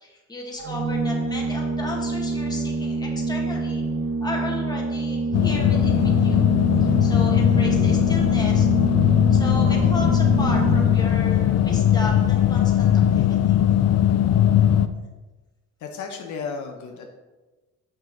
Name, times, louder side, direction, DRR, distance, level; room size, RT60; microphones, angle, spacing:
voice 1, 0.0-3.8 4.2-6.5 6.8-8.7 9.3-13.6, left 2 dB, 15° left, -2 dB, 1.8 m, -34 dB
Organ, 0.6-11.3, right 3 dB, 85° right, 1.0 m, -27 dB
sound 1, 5.3-14.9, left 10 dB, 60° left, 0.5 m, -19 dB
voice 2, 15.8-17.1, left 5 dB, 75° left, 3 dB, 1.0 m, -33 dB
7.2 x 5.7 x 3.9 m, 1.2 s
cardioid pair, 90°, 30 cm